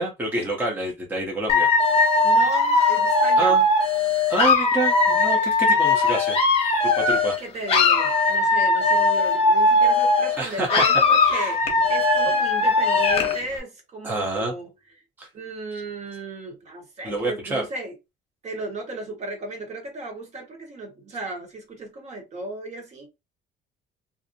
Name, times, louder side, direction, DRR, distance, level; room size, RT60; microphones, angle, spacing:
voice 1, 0.0-1.7 3.4-3.6 4.3-6.4 6.8-7.4 10.4-10.8 11.3-11.6 14.0-14.5 15.2-15.3 17.0-17.7, right 2 dB, 10° right, 0.6 m, -27 dB
Dog / Alarm, 1.5-7.4 7.7-10.4 10.7-13.4, left 2 dB, 35° left, 0.8 m, -19 dB
voice 2, 2.2-3.6 7.0-14.7 15.3-17.9 18.4-23.1, right 2 dB, 40° right, 1.1 m, -35 dB
2.5 x 2.0 x 2.7 m
cardioid pair, 130°, 17 cm